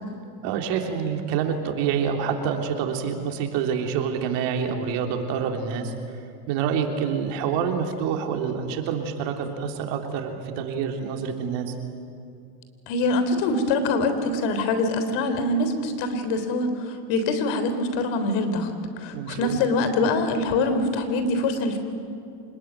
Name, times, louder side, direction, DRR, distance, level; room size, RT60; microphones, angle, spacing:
voice 1, 0.4-5.9 6.5-11.7 19.1-19.6, right 7 dB, 60° right, 4 dB, 3.4 m, -27 dB
voice 2, 12.9-18.7 19.0-21.8, left 2 dB, 60° left, 9 dB, 3.7 m, -24 dB
25.5 x 21.0 x 9.4 m, 2.5 s
supercardioid pair, 100°, 50 cm